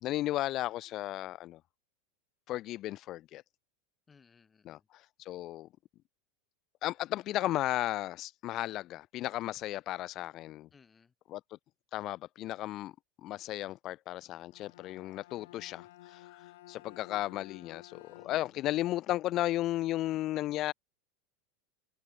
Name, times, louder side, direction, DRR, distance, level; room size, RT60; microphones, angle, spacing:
voice 1, 0.0-1.6 2.5-3.4 4.6-5.7 6.8-10.7 11.3-11.4 11.9-12.9 13.2-20.7, left 15 dB, 40° left, 0.9 m, -34 dB
voice 2, 4.1-4.9 10.7-11.1 18.1-18.9, left 5 dB, 20° left, 7.9 m, -63 dB
Bowed string instrument, 14.4-18.7, left 17 dB, 75° left, 1.6 m, -53 dB
supercardioid pair, 130°, 0 cm